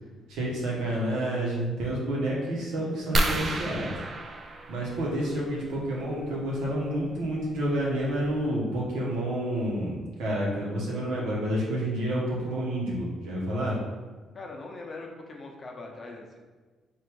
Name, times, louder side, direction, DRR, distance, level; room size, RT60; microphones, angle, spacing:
voice 1, 0.3-3.9 4.7-13.8, right 1 dB, 90° right, -4 dB, 1.2 m, -29 dB
sound 1, 3.1-5.5 7.1-7.3 7.9-8.0 8.3-8.5, right 1 dB, 40° right, 0.5 m, -30 dB
voice 2, 14.3-16.4, left 3 dB, 40° left, 0 dB, 0.8 m, -41 dB
3.6 x 2.6 x 4.6 m, 1.3 s
cardioid pair, 90°, 0 cm